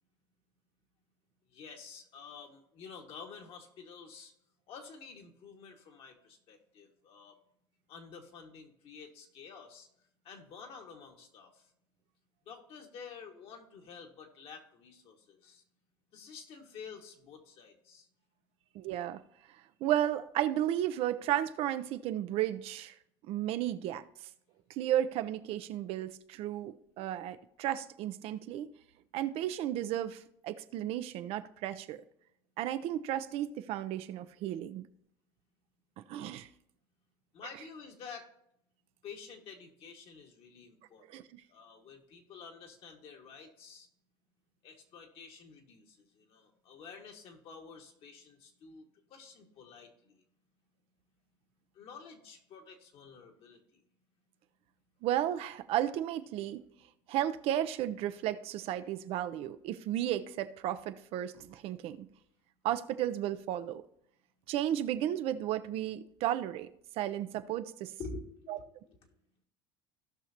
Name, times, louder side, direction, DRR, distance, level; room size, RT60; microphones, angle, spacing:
voice 1, 1.5-4.3 4.7-7.4 7.9-9.9 10.2-11.7 12.5-15.6 16.1-18.1 37.3-38.3 39.0-41.2 41.5-43.9 44.6-48.8 49.1-50.2 51.7-53.8 68.0-69.0, left 5 dB, 55° left, 1.9 m, -50 dB
voice 2, 18.7-19.2 19.8-22.9 23.3-24.3 24.8-28.7 29.1-32.0 32.6-34.9 36.1-36.5 41.1-41.4 55.0-56.6 57.1-62.1 62.6-63.8 64.5-66.7 67.0-67.9 68.5-68.6, right 12 dB, 55° right, 0.6 m, -33 dB
17.0 x 5.8 x 2.9 m
hypercardioid pair, 90°, 12 cm